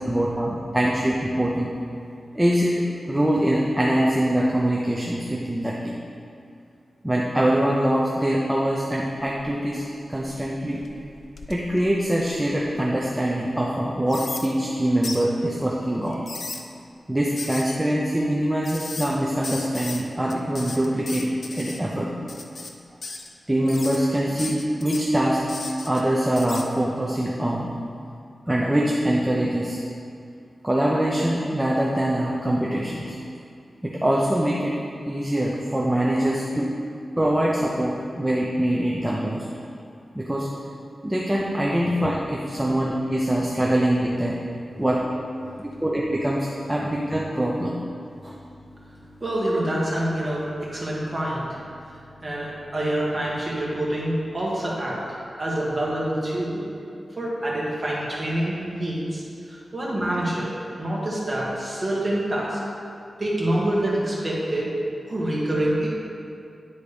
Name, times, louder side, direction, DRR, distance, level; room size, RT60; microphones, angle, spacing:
voice 1, 0.1-1.7 2.3-5.9 7.0-10.8 11.5-16.3 17.1-22.1 23.5-25.4 25.9-27.7 28.5-29.8 30.6-33.2 33.8-34.8 35.1-36.7 37.2-39.5 40.1-40.5 41.0-44.4 44.8-45.0 45.6-47.8 48.2-48.4, right 1 dB, 10° right, -4 dB, 0.6 m, -23 dB
sound 1, 9.2-9.7 10.1-12.8 13.3-13.4 14.1-14.5 15.0-15.2 16.1-16.6 17.4-17.8 18.6-19.1 19.4-20.0 20.3-21.8 22.3-22.7 23.0-23.3 23.7-24.0 24.4-25.0 25.5-26.0 26.4-26.7, left 3 dB, 55° left, 0.5 m, -36 dB
voice 2, 48.8-51.6 51.9-55.0 55.4-56.6 57.1-60.5 60.8-62.6 63.2-64.7 65.1-65.9, right 1 dB, 25° right, -6 dB, 1.7 m, -26 dB
9.8 x 4.0 x 5.0 m, 2.5 s
wide cardioid pair, 165°, 0 cm